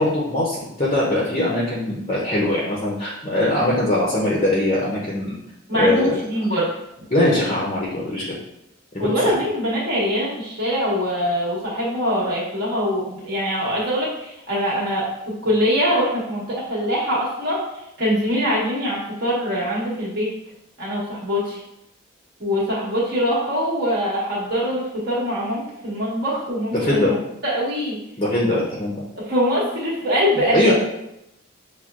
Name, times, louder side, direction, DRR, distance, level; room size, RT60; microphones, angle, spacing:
voice 1, 0.0-5.4 5.7-6.1 7.1-8.2 8.9-9.1 26.7-27.1 28.2-29.0 30.5-30.7, left 1 dB, 30° left, -5 dB, 0.6 m, -21 dB
voice 2, 5.7-6.7 9.0-15.1 15.4-17.6 18.0-20.3 20.8-21.6 22.4-26.8 27.1-27.2 27.4-28.0 29.1-30.7, equal, 50° right, -6 dB, 1.4 m, -23 dB
6.0 x 2.2 x 2.4 m, 0.83 s
head